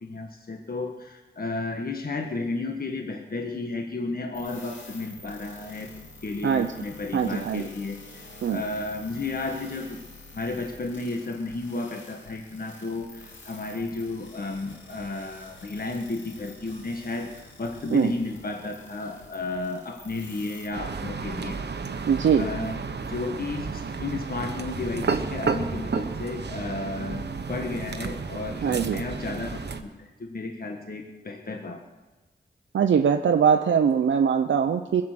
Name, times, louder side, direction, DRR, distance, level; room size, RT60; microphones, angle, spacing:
voice 1, 0.0-5.9 6.2-10.0 10.3-17.3 17.6-21.6 21.9-22.1 22.4-31.8, left 3 dB, 50° left, 3 dB, 1.5 m, -33 dB
sound 1, 4.3-20.7, left 2 dB, 85° left, 2.7 m, -48 dB
voice 2, 7.1-7.7 8.4-8.6 17.9-18.1 22.1-22.5 28.6-29.0 32.7-35.0, right 7 dB, 85° right, 5 dB, 0.6 m, -22 dB
sound 2, 20.7-29.8, right 5 dB, 65° right, 1.1 m, -32 dB
21.5 x 7.5 x 7.8 m, 1.2 s
cardioid pair, 65°, 19 cm